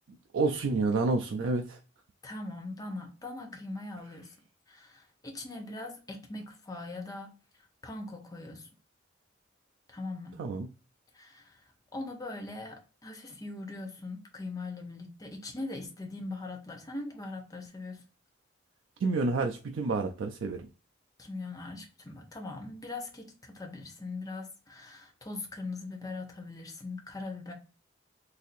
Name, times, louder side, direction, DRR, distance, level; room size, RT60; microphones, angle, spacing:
voice 1, 0.1-1.8 10.4-10.7 19.0-20.7, right 3 dB, 85° right, 0.4 m, -29 dB
voice 2, 2.2-4.3 4.7-7.3 7.8-8.7 9.9-10.4 11.1-11.6 11.9-18.0 21.2-27.5, left 2 dB, 20° left, 0.7 m, -41 dB
4.1 x 2.6 x 2.5 m
head